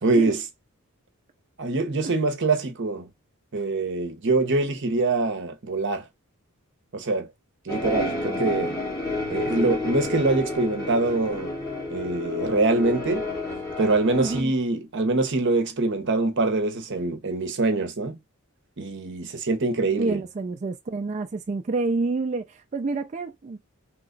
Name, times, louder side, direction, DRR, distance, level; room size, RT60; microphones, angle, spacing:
voice 1, 0.0-0.4 1.6-3.1 3.5-6.0 6.9-7.3 7.6-8.8 9.3-11.5 11.9-13.3 13.8-18.2 18.8-20.2, right 3 dB, 55° right, 0.8 m, -24 dB
sound 1, 7.7-14.4, left 2 dB, 15° left, 1.2 m, -30 dB
voice 2, 14.2-14.5 20.0-23.6, right 3 dB, 35° right, 0.3 m, -28 dB
2.9 x 2.3 x 3.8 m
head